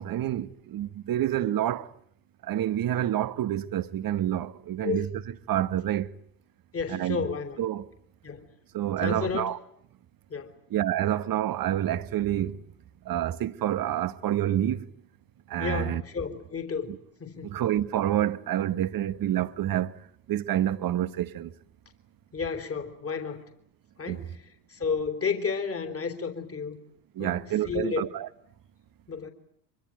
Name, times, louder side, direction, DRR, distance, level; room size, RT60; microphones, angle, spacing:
voice 1, 0.0-1.9 2.4-5.1 5.5-6.1 6.9-7.2 7.6-7.9 8.7-9.6 10.7-12.6 13.0-14.9 15.5-16.0 16.9-17.0 17.4-20.0 20.3-21.5 24.1-24.2 27.2-28.3, right 12 dB, 45° right, 1.3 m, -28 dB
voice 2, 4.8-5.1 6.7-7.6 8.2-8.5 9.0-9.5 10.3-10.5 15.6-16.9 17.2-17.5 22.3-23.4 24.0-26.8 27.2-28.0 29.1-29.3, left 5 dB, 30° left, 3.4 m, -32 dB
24.5 x 24.0 x 9.3 m
hypercardioid pair, 65°, 48 cm